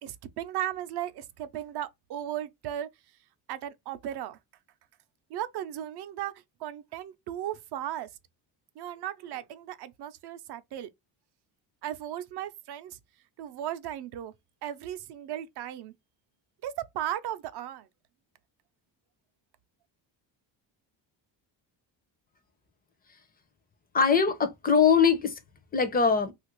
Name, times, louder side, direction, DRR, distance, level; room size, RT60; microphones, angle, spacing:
voice 1, 0.0-2.9 3.5-4.4 5.3-8.1 8.8-10.9 11.8-13.0 13.4-14.3 14.6-15.9 16.6-17.9, right 11 dB, 60° right, 0.5 m, -36 dB
voice 2, 23.9-25.4 25.7-26.3, left 6 dB, 20° left, 0.5 m, -22 dB
3.2 x 2.5 x 2.9 m
cardioid pair, 135°, 45 cm